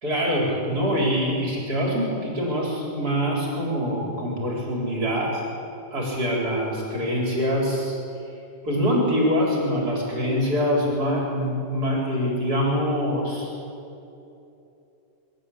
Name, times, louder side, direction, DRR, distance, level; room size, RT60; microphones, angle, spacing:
voice 1, 0.0-5.4 5.9-8.0 8.6-13.5, equal, 55° right, -2 dB, 4.7 m, -24 dB
25.5 x 12.5 x 8.5 m, 2.8 s
omnidirectional pair, 2.0 m